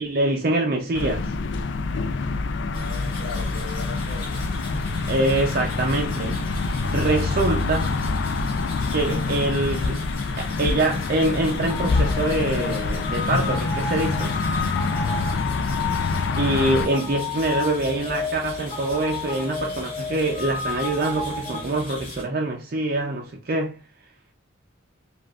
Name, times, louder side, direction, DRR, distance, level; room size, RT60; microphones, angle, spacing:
voice 1, 0.0-1.3 5.1-6.4 6.9-7.9 8.9-10.1 10.4-14.4 16.4-23.8, right 2 dB, 50° right, 0.5 m, -24 dB
sound 1, 0.9-16.9, left 3 dB, 65° left, 0.4 m, -26 dB
voice 2, 2.4-4.5 14.8-15.2, left 4 dB, 85° left, 0.9 m, -39 dB
sound 2, 2.7-22.2, left 1 dB, 40° left, 2.1 m, -39 dB
sound 3, 11.7-21.6, left 5 dB, 20° left, 1.3 m, -32 dB
4.9 x 2.4 x 2.3 m
head